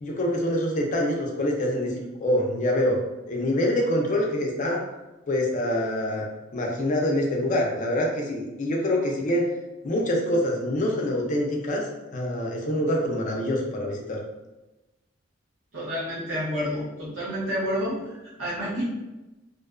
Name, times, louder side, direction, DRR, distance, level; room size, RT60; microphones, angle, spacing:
voice 1, 0.0-3.0 3.3-4.8 5.3-6.3 6.5-9.5 9.8-11.9 12.1-14.2, left 1 dB, 40° left, 0 dB, 0.5 m, -25 dB
voice 2, 15.7-18.8, equal, 80° right, -5 dB, 0.9 m, -29 dB
2.5 x 2.2 x 2.4 m, 1.0 s
head